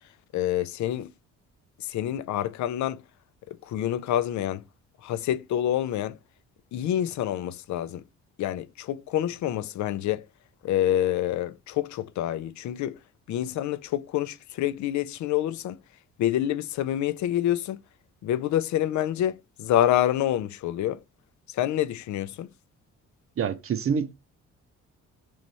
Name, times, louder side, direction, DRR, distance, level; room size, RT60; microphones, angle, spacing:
voice 1, 0.3-1.1 1.8-3.0 3.5-4.6 5.0-6.2 6.7-8.0 8.4-10.2 10.6-13.0 13.3-15.8 16.2-17.8 18.2-21.0 21.5-22.5, left 12 dB, 70° left, 0.5 m, -27 dB
voice 2, 23.4-24.1, right 7 dB, 45° right, 0.7 m, -26 dB
3.3 x 3.0 x 4.0 m
cardioid pair, 90°, 30 cm